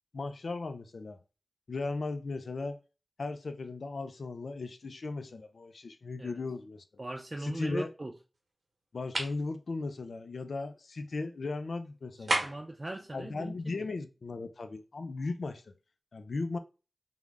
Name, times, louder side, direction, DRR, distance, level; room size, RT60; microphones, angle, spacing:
voice 1, 0.1-1.2 1.7-2.8 3.2-7.1 7.4-7.9 8.9-12.4 13.1-15.7 16.1-16.6, left 3 dB, 85° left, 0.4 m, -37 dB
voice 2, 7.0-8.1 12.2-13.7, right 1 dB, 35° right, 0.5 m, -39 dB
sound 1, 9.1-9.4 12.3-12.8, right 2 dB, 85° right, 0.9 m, -30 dB
3.5 x 2.1 x 3.3 m
wide cardioid pair, 50°, 0 cm